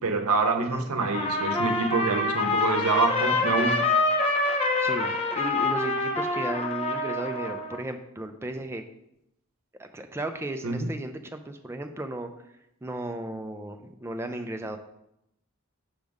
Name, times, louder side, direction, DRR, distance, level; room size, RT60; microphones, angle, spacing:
voice 1, 0.0-3.9 10.6-10.9, right 4 dB, 90° right, 5 dB, 0.8 m, -26 dB
Trumpet, 1.0-7.8, left 2 dB, 30° left, 0.6 m, -26 dB
voice 2, 4.8-8.8 9.8-12.3 12.8-14.8, right 1 dB, 10° right, 6 dB, 0.4 m, -35 dB
6.2 x 5.1 x 3.5 m, 0.81 s
head